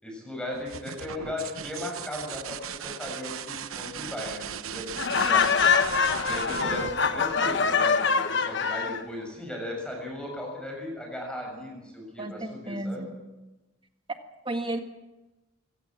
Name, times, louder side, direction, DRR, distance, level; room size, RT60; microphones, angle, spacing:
voice 1, 0.0-5.5 6.2-13.1, left 1 dB, 5° left, 1 dB, 6.7 m, -37 dB
sound 1, 0.5-8.1 9.9-10.5, right 7 dB, 75° right, 0.9 m, -38 dB
Laughter, 5.0-9.0, left 5 dB, 55° left, 1.1 m, -24 dB
voice 2, 12.2-13.1 14.4-14.8, right 1 dB, 25° right, 6 dB, 1.7 m, -33 dB
24.5 x 17.0 x 7.4 m, 1.1 s
head